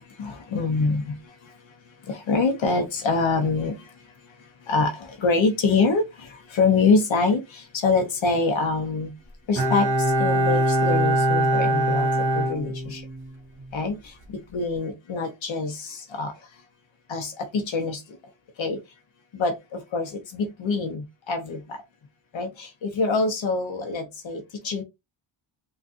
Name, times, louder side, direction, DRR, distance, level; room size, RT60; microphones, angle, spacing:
voice 1, 0.2-1.1 2.3-3.7 4.7-4.9 5.2-6.0 6.5-7.4 7.8-9.1 9.5-9.9 10.2-12.1 12.3-13.0 13.7-13.9 14.5-15.7 16.2-16.3 17.1-17.3 17.7-18.0 18.6-18.8 19.4-19.5 19.9-20.1 20.3-21.6 22.3-22.5 22.8-24.4 24.6-24.8, left 4 dB, 85° left, 0.8 m, -24 dB
Bowed string instrument, 9.6-13.3 13.6-13.7, right 1 dB, 55° right, 1.2 m, -22 dB
3.6 x 2.4 x 2.4 m
wide cardioid pair, 115°, 45 cm